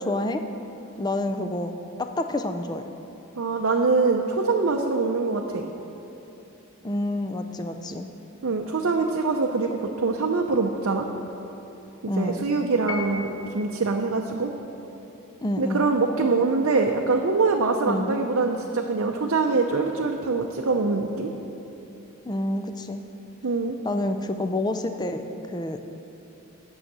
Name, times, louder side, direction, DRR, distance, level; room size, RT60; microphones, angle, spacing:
voice 1, 0.0-0.4 1.0-1.7 2.0-2.9 6.8-8.1 12.1-12.5 15.4-16.0 17.8-18.2 22.3-23.0 23.8-25.8, left 1 dB, 20° left, 7 dB, 0.4 m, -28 dB
voice 2, 3.4-5.7 8.4-11.1 12.0-14.5 15.6-21.3 23.4-23.8, right 3 dB, 65° right, 2 dB, 0.6 m, -24 dB
Piano, 12.9-13.8, left 4 dB, 80° left, 1.1 m, -35 dB
8.8 x 6.4 x 7.9 m, 3.0 s
head